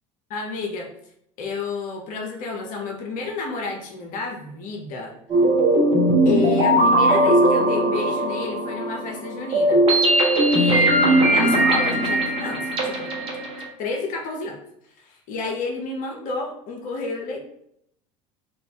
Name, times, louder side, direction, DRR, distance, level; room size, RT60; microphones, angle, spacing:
voice 1, 0.3-0.9 1.4-5.1 6.2-9.8 10.5-13.1 13.8-14.6 15.0-17.4, left 3 dB, 50° left, 1 dB, 0.8 m, -30 dB
sound 1, 5.3-13.6, right 1 dB, 30° right, 1.0 m, -19 dB
2.8 x 2.5 x 3.7 m, 0.73 s
figure-of-eight pair, 70°, 18 cm